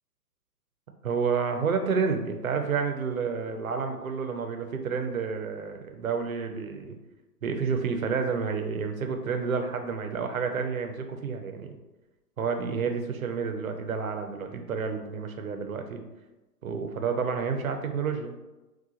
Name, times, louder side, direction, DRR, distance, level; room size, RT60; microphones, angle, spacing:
voice 1, 1.0-7.0 7.4-11.7 12.4-16.0 16.6-18.3, right 5 dB, 55° right, 5 dB, 0.7 m, -30 dB
6.2 x 2.4 x 2.8 m, 1.1 s
figure-of-eight pair, 135°, 49 cm